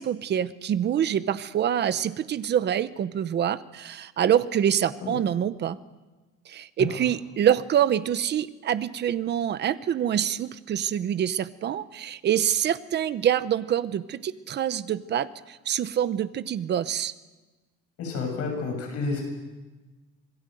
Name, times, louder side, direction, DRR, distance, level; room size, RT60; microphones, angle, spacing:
voice 1, 0.0-5.8 6.5-17.1, right 10 dB, 35° right, 14 dB, 0.9 m, -26 dB
voice 2, 18.0-19.3, left 3 dB, 55° left, 2 dB, 7.4 m, -30 dB
26.5 x 21.0 x 7.8 m, 1.2 s
cardioid pair, 170°, 29 cm